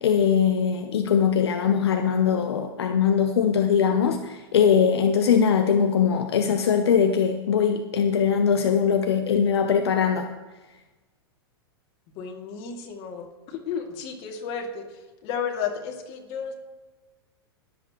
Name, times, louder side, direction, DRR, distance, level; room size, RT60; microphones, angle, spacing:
voice 1, 0.0-10.3, left 7 dB, 80° left, 6 dB, 0.8 m, -21 dB
voice 2, 12.1-16.5, left 7 dB, 45° left, 2 dB, 2.5 m, -33 dB
20.5 x 8.2 x 3.1 m, 1.2 s
hypercardioid pair, 115°, 13 cm